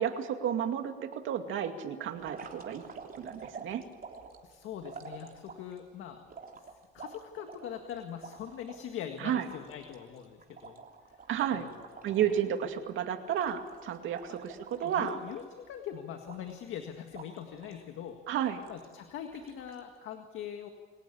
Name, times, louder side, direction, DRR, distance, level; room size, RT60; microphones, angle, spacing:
voice 1, 0.0-2.8 3.2-3.8 9.2-9.4 11.3-11.7 12.0-15.2 18.3-18.6, right 9 dB, 85° right, 6 dB, 2.3 m, -32 dB
sound 1, 2.2-5.8 6.3-8.8 9.2-9.3 9.5-12.4 12.7-12.9 13.3-15.8 16.3-16.8 17.1-17.8 18.3-18.9 19.3-19.8, right 5 dB, 45° right, 3.3 m, -48 dB
voice 2, 4.4-6.2 6.5-10.8 11.5-12.3 14.8-18.2 18.7-20.7, left 9 dB, 90° left, 5 dB, 1.8 m, -42 dB
28.0 x 18.0 x 8.5 m, 1.5 s
cardioid pair, 90°, 20 cm